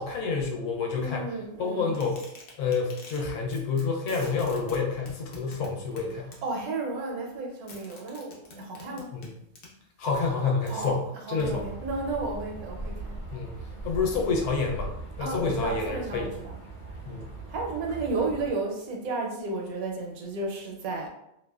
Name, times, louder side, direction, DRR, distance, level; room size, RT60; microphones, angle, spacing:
voice 1, 0.0-1.3 1.6-2.3 2.6-6.3 9.1-9.3 10.0-11.6 13.3-13.5 13.8-16.3 17.0-17.3, left 4 dB, 90° left, 0 dB, 1.1 m, -28 dB
voice 2, 0.9-1.9 6.4-9.1 10.7-10.9 11.3-13.2 14.1-14.2 15.2-16.5 17.5-21.1, right 3 dB, 75° right, 0 dB, 1.0 m, -33 dB
sound 1, 2.0-3.2 3.5-3.8 4.1-6.4 7.7-9.7 10.2-10.3 10.7-10.9, left 3 dB, 60° left, 0.7 m, -45 dB
sound 2, 11.4-18.5, right 2 dB, 40° left, 0.9 m, -39 dB
2.6 x 2.1 x 2.2 m, 0.80 s
omnidirectional pair, 1.6 m